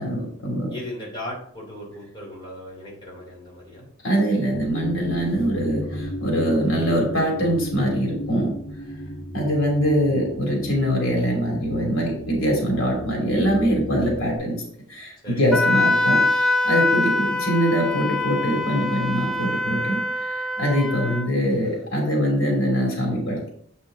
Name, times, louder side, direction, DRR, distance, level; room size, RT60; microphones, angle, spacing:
voice 1, 0.0-0.7 4.0-8.5 9.3-14.6 14.9-23.5, equal, 85° left, -1 dB, 2.9 m, -23 dB
voice 2, 0.7-3.9 15.2-15.7, left 1 dB, 25° left, -4 dB, 2.9 m, -37 dB
sound 1, 4.5-14.4, equal, 30° right, 2.0 m, -34 dB
Wind instrument woodwind instrument, 15.5-21.3, left 2 dB, ahead, 0.5 m, -23 dB
7.9 x 5.5 x 3.8 m, 0.64 s
head